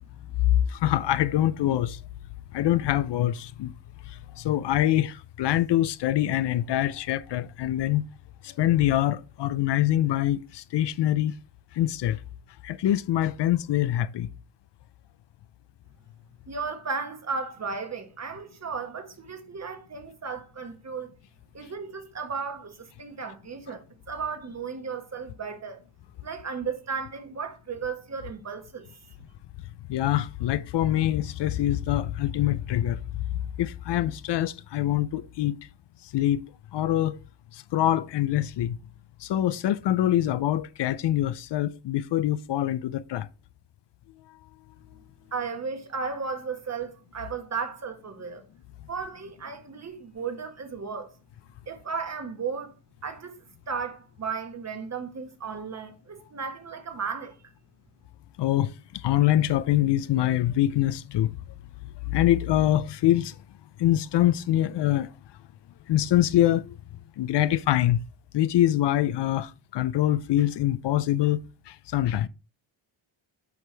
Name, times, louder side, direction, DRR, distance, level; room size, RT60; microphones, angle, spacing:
voice 1, 0.4-2.0 2.5-3.7 4.4-8.0 8.4-11.3 11.8-12.2 12.6-14.3 29.9-33.0 33.6-35.6 36.1-36.4 36.7-37.2 37.7-38.8 39.2-43.3 58.4-58.7 59.0-61.4 62.1-63.3 63.8-65.1 65.9-66.7 67.2-68.0 68.3-71.4 71.7-72.3, left 13 dB, 60° left, 0.5 m, -24 dB
voice 2, 16.5-21.1 21.5-25.8 26.2-29.0 45.3-48.4 48.9-51.1 51.7-52.7 53.0-53.4 53.7-57.4, right 5 dB, 35° right, 1.3 m, -35 dB
7.8 x 5.0 x 3.3 m
cardioid pair, 95°, 48 cm